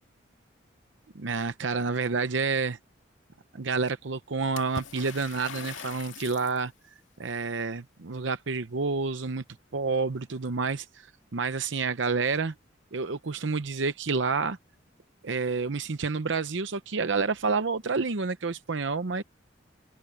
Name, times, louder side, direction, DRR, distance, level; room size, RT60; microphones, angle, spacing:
voice 1, 1.1-2.8 3.5-6.7 7.2-9.4 9.7-11.1 11.3-12.5 12.9-14.6 15.2-19.2, right 4 dB, 75° right, 0.7 m, -29 dB
Water / Splash splatter, 4.6-6.6, left 5 dB, 85° left, 2.1 m, -41 dB
open air
head